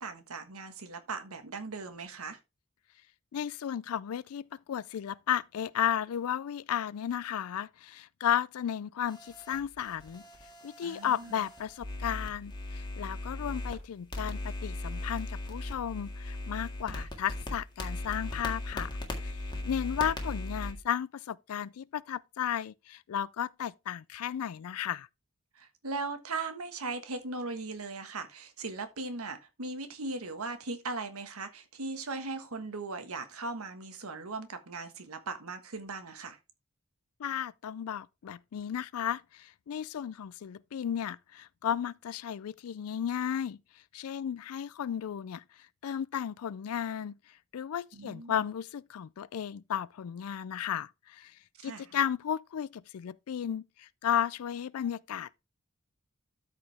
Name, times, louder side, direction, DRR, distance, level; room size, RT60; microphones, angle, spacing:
voice 1, 0.0-2.4 10.8-11.4 16.9-17.0 25.5-36.4 47.9-48.4 51.6-51.9, right 3 dB, 85° right, 1.4 m, -38 dB
voice 2, 3.3-10.2 10.6-19.4 19.6-25.1 37.2-43.6 43.9-45.4 45.8-47.2 47.5-51.4 51.6-55.4, left 9 dB, 85° left, 0.4 m, -34 dB
sound 1, 9.1-13.8 14.1-20.7, left 2 dB, 20° left, 1.7 m, -38 dB
13.0 x 5.0 x 3.4 m
head